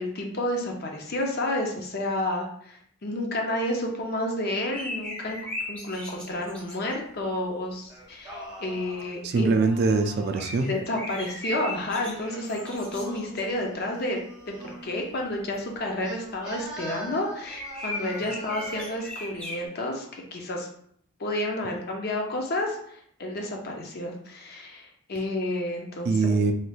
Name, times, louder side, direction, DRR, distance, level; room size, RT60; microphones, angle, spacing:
voice 1, 0.0-5.4 5.7-9.5 10.7-14.2 14.5-20.7 21.2-26.4, left 1 dB, 45° left, 1 dB, 0.5 m, -30 dB
sound 1, 4.7-6.9 10.1-13.4 15.5-15.6 17.4-19.7, left 1 dB, 5° left, 0.9 m, -37 dB
Singing, 7.9-10.7 11.8-15.0 16.0-19.1, right 1 dB, 20° right, 1.0 m, -43 dB
voice 2, 9.2-10.7 26.0-26.5, right 4 dB, 45° right, 6 dB, 0.3 m, -23 dB
3.1 x 3.0 x 2.3 m, 0.66 s
head